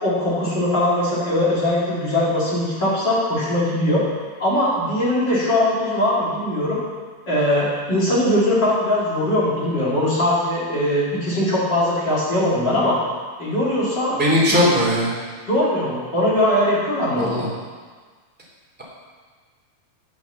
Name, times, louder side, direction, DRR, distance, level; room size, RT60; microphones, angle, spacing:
voice 1, 0.0-4.0 4.4-6.8 7.3-13.0 13.4-14.2 14.5-14.6 15.5-17.4, left 1 dB, 30° left, -8 dB, 3.2 m, -20 dB
voice 2, 14.2-15.1 17.2-17.5, left 1 dB, 5° right, -5 dB, 2.2 m, -18 dB
9.0 x 8.1 x 7.1 m, 1.5 s
omnidirectional pair, 4.3 m